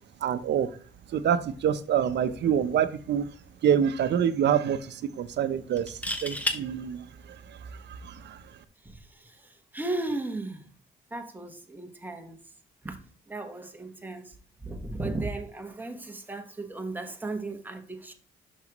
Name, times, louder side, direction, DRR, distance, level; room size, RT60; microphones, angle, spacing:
voice 1, 0.2-0.7 1.1-3.2 3.6-4.8 5.2-5.9 6.2-7.0 8.3-8.4, right 9 dB, 60° right, 0.7 m, -25 dB
sound 1, 2.9-3.2 3.5-3.6 5.8-6.6 8.4-8.6, left 1 dB, 5° left, 0.9 m, -31 dB
voice 2, 8.8-10.7 11.1-12.4 12.8-14.3 14.6-18.1, right 2 dB, 10° right, 1.2 m, -36 dB
6.1 x 5.6 x 3.0 m
cardioid pair, 90°, 20 cm